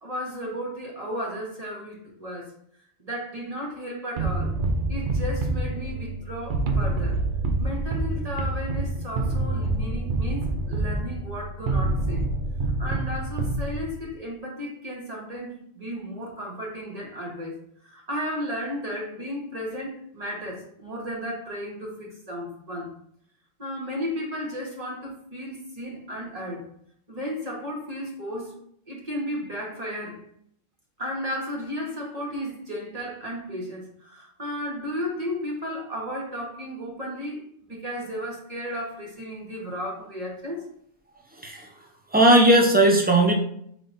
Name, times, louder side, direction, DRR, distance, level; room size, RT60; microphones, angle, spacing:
voice 1, 0.0-2.5 3.0-4.5 4.9-7.2 7.6-12.2 12.8-22.9 23.6-26.7 27.1-28.6 28.9-30.2 31.0-37.4 37.7-40.6, equal, 35° right, -2 dB, 1.2 m, -34 dB
sound 1, 4.2-14.1, right 2 dB, 55° right, 0.7 m, -27 dB
voice 2, 42.1-43.3, right 1 dB, 10° right, 0 dB, 0.5 m, -17 dB
5.4 x 3.4 x 2.6 m, 0.68 s
omnidirectional pair, 1.2 m